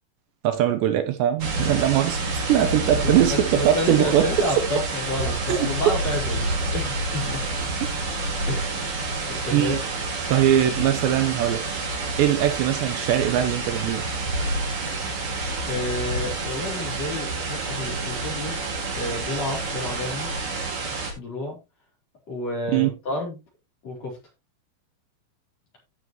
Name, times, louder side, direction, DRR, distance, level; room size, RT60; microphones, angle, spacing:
voice 1, 0.4-4.3 5.5-5.6 9.5-9.8 10.3-11.6 12.2-14.1 22.7-22.9, right 11 dB, 75° right, 2.9 m, -21 dB
sound 1, 1.4-21.1, right 2 dB, 40° right, 2.4 m, -28 dB
voice 2, 3.0-7.5 8.5-8.9 9.3-9.8 15.7-18.6 18.9-20.3 21.1-21.6 22.3-23.4 23.8-24.2, left 1 dB, 35° left, 4.5 m, -30 dB
15.0 x 6.3 x 3.0 m
omnidirectional pair, 5.4 m